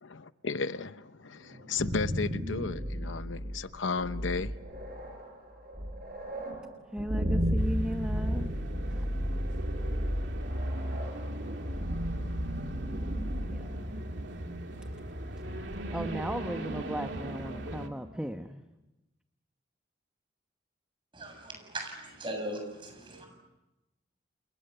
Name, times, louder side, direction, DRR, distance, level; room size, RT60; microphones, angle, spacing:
voice 1, 0.0-4.5, left 4 dB, 85° left, 12 dB, 0.9 m, -34 dB
sound 1, 1.5-14.4, equal, 45° right, 5.5 m, -34 dB
voice 2, 6.9-8.5 8.9-9.1 13.5-13.7 15.9-18.6, equal, 5° right, 6 dB, 1.0 m, -36 dB
sound 2, 7.5-17.9, right 1 dB, 70° right, 2.4 m, -37 dB
voice 3, 21.1-23.3, right 1 dB, 25° right, 3 dB, 7.6 m, -39 dB
30.0 x 28.5 x 6.9 m, 1.0 s
head